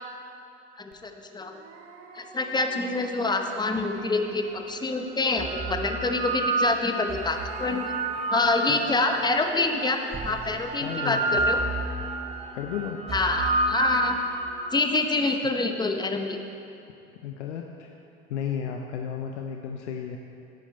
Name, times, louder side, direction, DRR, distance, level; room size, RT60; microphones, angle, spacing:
voice 1, 0.8-1.6 2.1-7.9 8.3-11.6 13.1-14.2 14.7-16.4, left 3 dB, 10° left, 5 dB, 0.9 m, -26 dB
sound 1, 0.9-1.0 1.4-5.0 6.7-14.0, right 3 dB, 65° right, 1.2 m, -43 dB
sound 2, 4.1-4.2 5.1-9.4 10.1-14.8, right 2 dB, 15° right, 0.9 m, -29 dB
voice 2, 10.8-11.4 12.5-13.2 17.2-17.9 18.3-20.2, left 8 dB, 75° left, 3 dB, 0.7 m, -33 dB
11.0 x 9.2 x 4.4 m, 2.7 s
hypercardioid pair, 70°, 35 cm